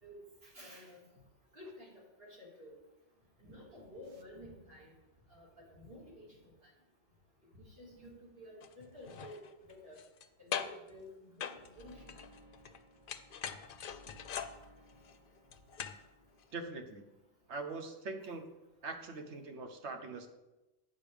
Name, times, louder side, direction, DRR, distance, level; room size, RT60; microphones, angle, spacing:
voice 1, 0.0-1.0 1.5-2.8 3.4-4.9 5.3-6.3 7.8-9.4 9.7-10.0 10.4-12.2, left 1 dB, 55° right, -5 dB, 3.3 m, -52 dB
sound 1, 8.6-8.7 9.0-10.3 10.5-10.9 11.4-12.8 13.1-16.1 16.4-16.5, left 8 dB, 60° left, 0.7 m, -42 dB
sound 2, 11.7-16.7, left 1 dB, 20° right, 2.6 m, -60 dB
voice 2, 16.5-17.0 17.5-18.5 18.8-20.3, right 3 dB, 70° right, 5 dB, 1.3 m, -42 dB
9.1 x 6.7 x 5.1 m, 1.0 s
omnidirectional pair, 1.2 m